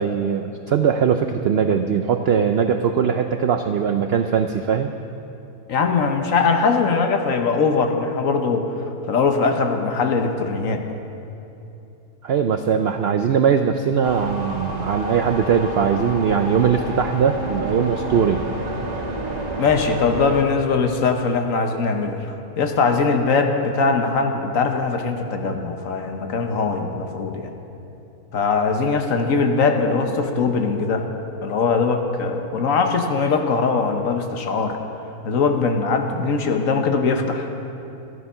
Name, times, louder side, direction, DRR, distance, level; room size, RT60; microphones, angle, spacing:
voice 1, 0.0-4.9 12.2-18.4, right 7 dB, 90° right, 7 dB, 0.5 m, -20 dB
voice 2, 5.7-8.7 9.1-10.8 19.6-22.2 22.6-27.5 28.3-31.1 31.4-34.8 35.2-37.5, left 4 dB, 60° left, 5 dB, 1.3 m, -21 dB
sound 1, 14.0-20.4, right 1 dB, 30° right, 1.2 m, -30 dB
14.0 x 11.0 x 5.6 m, 2.8 s
omnidirectional pair, 1.7 m